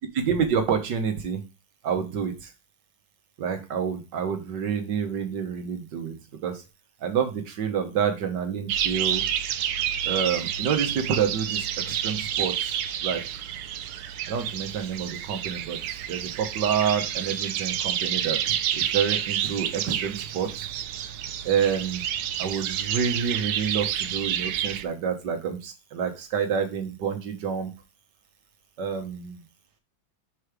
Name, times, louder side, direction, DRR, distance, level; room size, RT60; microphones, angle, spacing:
voice 1, 0.1-1.4 1.8-2.5 3.4-6.2 6.4-6.6 7.0-9.2 10.1-12.8 13.0-13.2 14.3-15.8 16.1-18.4 18.7-20.7 21.4-22.0 22.4-27.7 28.8-29.4, right 7 dB, 60° right, 6 dB, 1.6 m, -28 dB
sound 1, 8.7-24.8, right 10 dB, 90° right, 1.5 m, -29 dB
6.8 x 3.2 x 4.9 m, 0.29 s
omnidirectional pair, 2.2 m